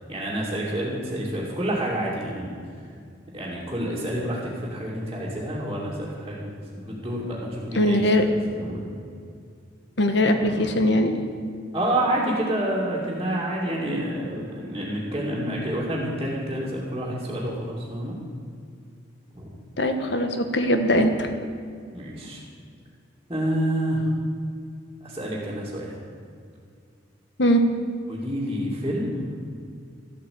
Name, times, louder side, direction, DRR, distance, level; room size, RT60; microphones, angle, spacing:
voice 1, 0.1-2.6 3.3-8.0 8.3-8.8 10.4-10.7 11.7-18.2 19.3-19.5 21.9-22.4 23.3-24.1 25.0-25.9 28.1-29.3, right 1 dB, 20° right, -9 dB, 2.6 m, -28 dB
voice 2, 7.7-8.2 10.0-11.2 19.8-21.3 27.4-27.6, left 1 dB, 65° left, 7 dB, 1.4 m, -21 dB
13.5 x 8.7 x 8.7 m, 2.3 s
head